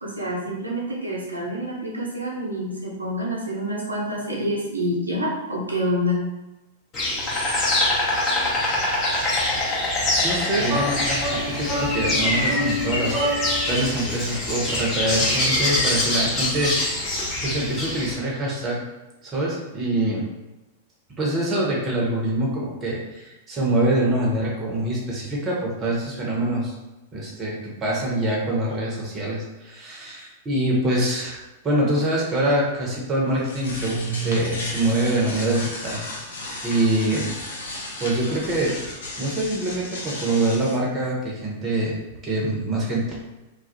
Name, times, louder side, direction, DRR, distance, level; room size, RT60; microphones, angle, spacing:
voice 1, 0.0-6.2, equal, 85° right, -5 dB, 0.6 m, -27 dB
Insect, 6.9-18.1, left 1 dB, 30° left, 0.8 m, -24 dB
voice 2, 10.2-17.1 17.4-18.8 19.2-20.2 21.2-26.7 27.1-36.0 36.6-37.3 37.6-38.7 39.2-42.0 42.2-43.1, right 1 dB, 25° right, -3 dB, 0.7 m, -25 dB
sound 1, 10.6-13.8, left 1 dB, 5° left, 1.0 m, -28 dB
sound 2, 33.2-40.8, left 1 dB, 65° left, 0.5 m, -33 dB
2.2 x 2.0 x 2.7 m, 1.0 s
figure-of-eight pair, 95°, 0 cm